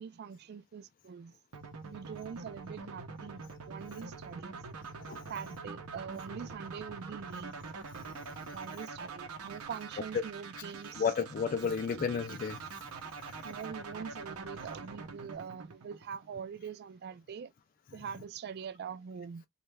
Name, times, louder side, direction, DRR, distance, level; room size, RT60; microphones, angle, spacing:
voice 1, 0.0-1.3 1.8-4.6 5.3-7.6 8.5-11.0 11.6-11.7 13.4-17.5 17.9-19.4, right 7 dB, 45° right, 0.3 m, -43 dB
sound 1, 1.5-16.5, right 4 dB, 80° right, 0.7 m, -45 dB
voice 2, 5.0-5.3 8.1-8.6 10.1-10.2 10.6-10.7 10.9-12.6 13.1-13.4, left 6 dB, 40° left, 0.3 m, -33 dB
3.1 x 2.3 x 3.3 m
head